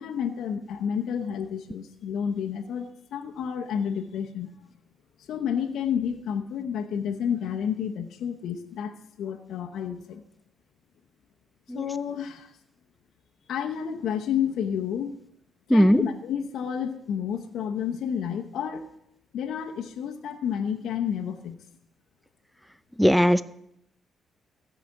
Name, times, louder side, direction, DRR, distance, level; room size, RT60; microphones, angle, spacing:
voice 1, 0.0-4.5 5.2-10.2 11.7-12.5 13.4-15.2 15.7-18.9 19.3-21.6, left 8 dB, 75° left, 3 dB, 0.8 m, -30 dB
voice 2, 15.7-16.0 23.0-23.4, equal, ahead, 14 dB, 0.5 m, -18 dB
14.5 x 4.9 x 7.2 m, 0.76 s
cardioid pair, 90°, 0 cm